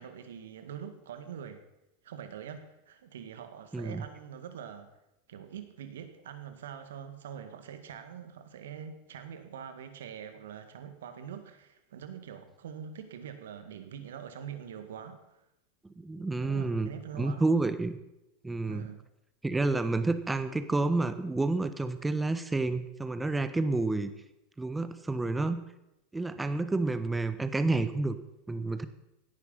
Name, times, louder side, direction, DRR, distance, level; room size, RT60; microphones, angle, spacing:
voice 1, 0.0-1.6 2.0-4.9 5.3-15.2 16.4-17.5 18.7-19.0, right 8 dB, 80° right, 9 dB, 1.9 m, -44 dB
voice 2, 3.7-4.0 16.0-16.9 17.2-18.0 18.4-18.9 19.4-24.1 24.6-25.6 26.1-28.2 28.5-28.9, right 3 dB, 10° right, 11 dB, 1.4 m, -29 dB
17.0 x 9.9 x 5.6 m, 0.90 s
hypercardioid pair, 95°, 0 cm